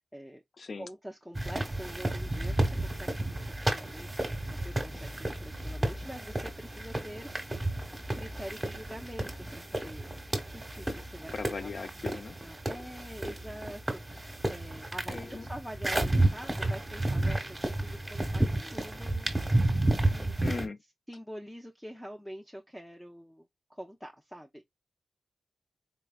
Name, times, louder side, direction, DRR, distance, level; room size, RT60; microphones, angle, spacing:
voice 1, 0.0-0.4 0.8-7.6 8.1-10.1 10.5-11.3 11.6-11.7 12.0-19.3 20.1-20.4 21.1-24.6, equal, 5° left, 0.6 m, -45 dB
sound 1, 1.4-20.7, right 1 dB, 15° right, 1.1 m, -32 dB
voice 2, 11.3-12.4 15.1-15.5 20.4-20.8, left 4 dB, 50° left, 0.5 m, -38 dB
4.1 x 3.2 x 2.3 m
wide cardioid pair, 90°, 0 cm